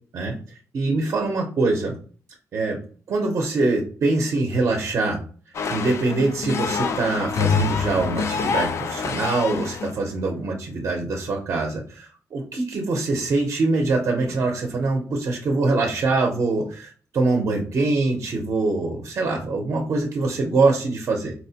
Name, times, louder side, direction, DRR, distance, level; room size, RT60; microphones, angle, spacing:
voice 1, 0.7-2.0 2.5-2.8 3.1-5.2 5.7-21.3, right 3 dB, 55° right, 1 dB, 0.6 m, -23 dB
sound 1, 5.5-10.0, left 5 dB, 55° left, 0.3 m, -26 dB
4.1 x 2.1 x 2.7 m, 0.40 s
wide cardioid pair, 160°, 6 cm